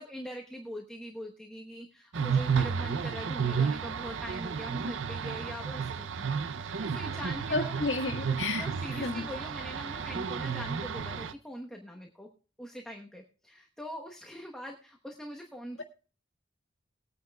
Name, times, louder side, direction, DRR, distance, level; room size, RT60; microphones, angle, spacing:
voice 1, 0.0-7.9 8.3-12.3 12.6-15.8, equal, 5° left, 1 dB, 1.1 m, -43 dB
sound 1, 2.1-11.3, right 6 dB, 80° right, 0.6 m, -32 dB
voice 2, 7.5-9.2, left 3 dB, 80° left, 2 dB, 1.7 m, -32 dB
21.5 x 9.2 x 2.3 m, 0.37 s
head